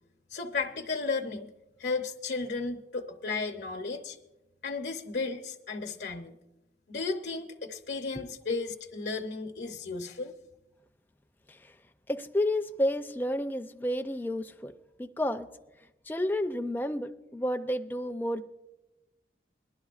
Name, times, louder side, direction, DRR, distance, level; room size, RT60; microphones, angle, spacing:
voice 1, 0.3-1.5 1.8-4.2 4.6-6.3 6.9-10.3, left 4 dB, 75° left, 3 dB, 0.7 m, -34 dB
voice 2, 12.1-14.7 15.0-15.5 16.1-18.4, left 1 dB, 10° left, 6 dB, 0.4 m, -30 dB
21.0 x 12.0 x 2.4 m, 1.0 s
head